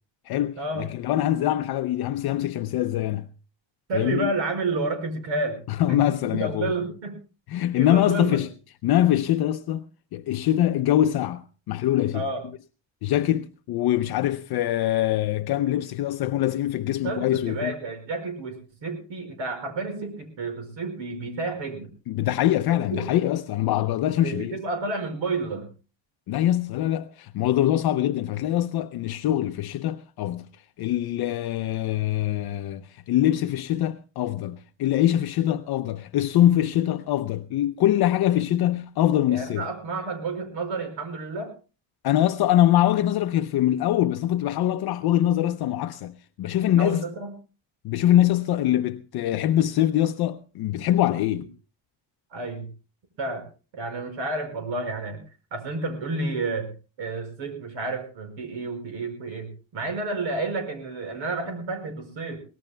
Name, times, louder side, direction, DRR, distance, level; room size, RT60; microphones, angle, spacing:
voice 1, 0.3-3.3 3.9-4.3 5.7-6.7 7.5-8.5 8.8-9.9 10.1-12.2 13.0-17.7 22.1-24.6 26.3-30.5 30.8-39.7 42.0-47.0 47.8-51.5, left 12 dB, 55° left, 0.6 m, -23 dB
voice 2, 3.9-5.6 5.9-7.2 7.7-8.4 12.1-12.4 17.0-21.9 22.9-23.0 24.2-25.7 39.3-41.5 46.8-47.3 52.3-52.7 53.2-53.4 53.7-55.2 55.5-56.7 57.0-62.4, right 3 dB, 75° right, 5.1 m, -30 dB
23.5 x 18.5 x 2.2 m
cardioid pair, 160°, 46 cm